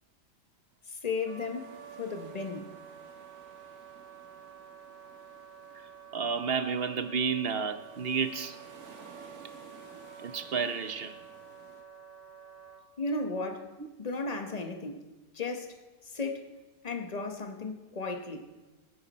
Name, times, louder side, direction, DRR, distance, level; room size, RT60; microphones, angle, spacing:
voice 1, 0.9-2.7 13.0-13.7 14.0-15.0 15.3-15.8 16.0-16.5 16.8-18.4, left 3 dB, 30° left, 1.2 m, -35 dB
Wind instrument woodwind instrument, 1.2-12.8, right 7 dB, 70° right, 1.4 m, -50 dB
sound 1, 1.2-11.8, right 4 dB, 85° right, 2.1 m, -55 dB
voice 2, 6.1-8.6 10.2-11.1 13.8-13.9, right 6 dB, 50° right, 0.9 m, -31 dB
21.5 x 9.7 x 4.2 m
omnidirectional pair, 1.5 m